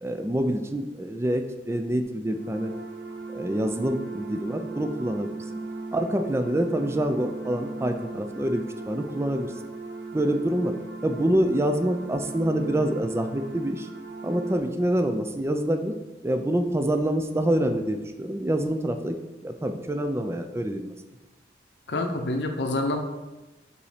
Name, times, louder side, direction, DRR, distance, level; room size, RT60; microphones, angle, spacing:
voice 1, 0.0-2.7 3.3-5.4 5.9-9.5 10.1-10.7 11.0-13.9 14.2-15.9 16.2-19.2 19.4-20.9, right 1 dB, 15° right, 7 dB, 0.4 m, -26 dB
sound 1, 2.3-14.6, right 3 dB, 60° right, 0.8 m, -38 dB
voice 2, 21.9-23.0, left 2 dB, 75° left, 4 dB, 0.7 m, -27 dB
5.3 x 4.1 x 5.0 m, 1.1 s
head